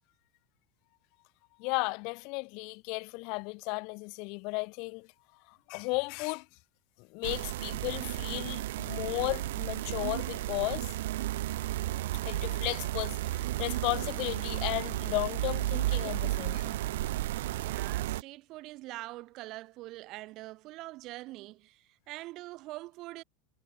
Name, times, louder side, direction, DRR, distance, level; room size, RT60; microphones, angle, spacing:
voice 1, 1.6-5.1 5.5-6.5 7.0-10.9 12.2-16.8, left 31 dB, 50° left, 2.4 m, -35 dB
sound 1, 7.2-18.2, right 16 dB, 80° right, 0.8 m, -33 dB
voice 2, 17.5-23.2, right 19 dB, 45° right, 3.0 m, -44 dB
supercardioid pair, 145°, 0 cm